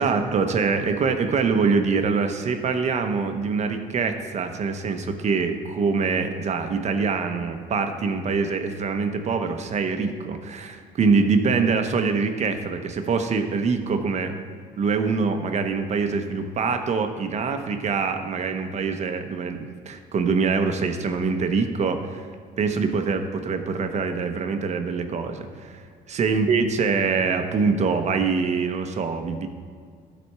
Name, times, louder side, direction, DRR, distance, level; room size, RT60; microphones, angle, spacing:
voice 1, 0.0-14.4 14.8-22.3 22.6-29.5, right 5 dB, 40° right, 6 dB, 0.8 m, -24 dB
12.5 x 4.3 x 4.6 m, 2.1 s
cardioid pair, 110°, 17 cm